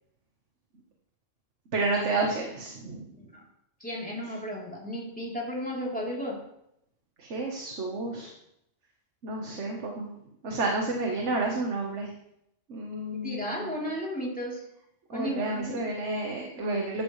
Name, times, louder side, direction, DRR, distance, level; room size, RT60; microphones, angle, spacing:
voice 1, 1.7-3.1 7.2-8.3 9.2-10.1 10.4-12.1 12.7-13.8 15.1-17.0, right 2 dB, 70° right, 1 dB, 1.7 m, -30 dB
voice 2, 3.8-6.4 13.2-14.6 15.1-16.0, equal, 5° left, -4 dB, 3.5 m, -34 dB
13.5 x 11.0 x 3.3 m, 0.79 s
omnidirectional pair, 1.3 m